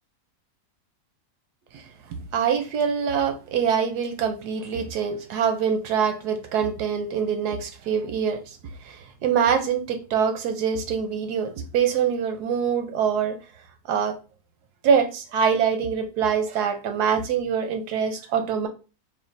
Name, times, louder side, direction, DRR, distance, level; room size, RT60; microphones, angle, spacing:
voice 1, 2.3-8.4 8.8-13.4 13.9-14.2 14.8-18.7, right 7 dB, 90° right, 1.3 m, -24 dB
3.6 x 2.5 x 3.8 m
omnidirectional pair, 1.6 m